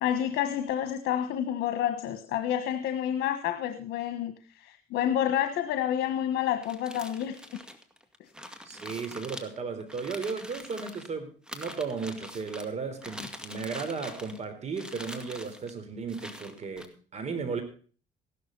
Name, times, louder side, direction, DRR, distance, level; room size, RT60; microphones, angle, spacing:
voice 1, 0.0-7.4, left 10 dB, 80° left, 8 dB, 1.4 m, -29 dB
sound 1, 6.5-11.1 11.5-12.7 13.0-14.4 14.7-15.7 16.1-16.9, equal, 5° right, 2.1 m, -44 dB
voice 2, 8.7-17.6, right 5 dB, 40° right, 8 dB, 3.9 m, -35 dB
15.5 x 12.5 x 4.0 m, 0.41 s
cardioid pair, 110°, 17 cm